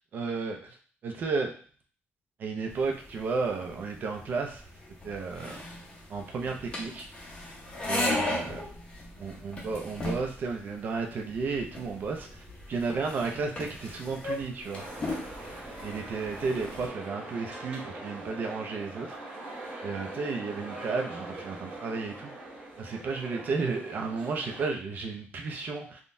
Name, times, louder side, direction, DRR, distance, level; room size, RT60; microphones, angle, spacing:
voice 1, 0.1-0.6 1.0-1.5 2.4-4.6 5.0-5.5 6.1-7.1 7.9-8.6 9.2-14.8 15.8-19.2 19.8-22.3 22.8-26.0, right 4 dB, 45° right, 2 dB, 0.5 m, -33 dB
sound 1, 2.7-16.9, left 2 dB, 25° left, 0.6 m, -37 dB
sound 2, 14.7-24.7, right 2 dB, 25° right, 0.9 m, -42 dB
3.6 x 2.2 x 2.5 m, 0.43 s
cardioid pair, 175°, 4 cm